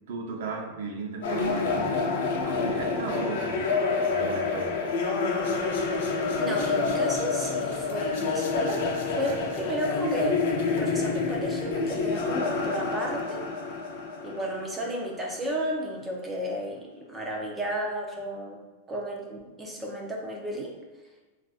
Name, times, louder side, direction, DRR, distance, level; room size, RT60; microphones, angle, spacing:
voice 1, 0.1-1.9 2.4-3.7 4.0-4.8 9.2-9.4, right 4 dB, 70° right, 2 dB, 0.6 m, -35 dB
sound 1, 1.2-15.3, left 4 dB, 70° left, 0.6 m, -28 dB
voice 2, 6.4-13.4 14.2-18.6 18.9-20.7, right 1 dB, 15° right, -1 dB, 0.5 m, -33 dB
3.7 x 2.5 x 2.4 m, 1.2 s
supercardioid pair, 150°, 0 cm